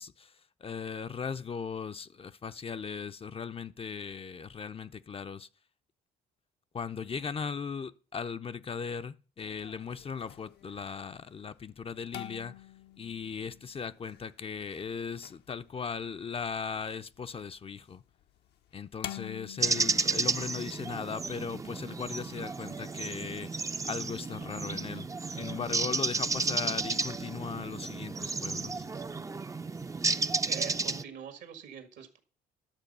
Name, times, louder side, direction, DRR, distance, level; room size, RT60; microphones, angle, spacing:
voice 1, 0.0-5.5 6.7-12.7 13.0-18.0 18.7-28.9, left 6 dB, 30° left, 0.5 m, -38 dB
sound 1, 9.4-29.3, left 12 dB, 65° left, 0.7 m, -51 dB
sound 2, 19.6-31.0, right 4 dB, 15° right, 0.5 m, -32 dB
voice 2, 30.5-32.2, right 8 dB, 75° right, 1.8 m, -44 dB
12.0 x 6.5 x 5.4 m
supercardioid pair, 65°, 18 cm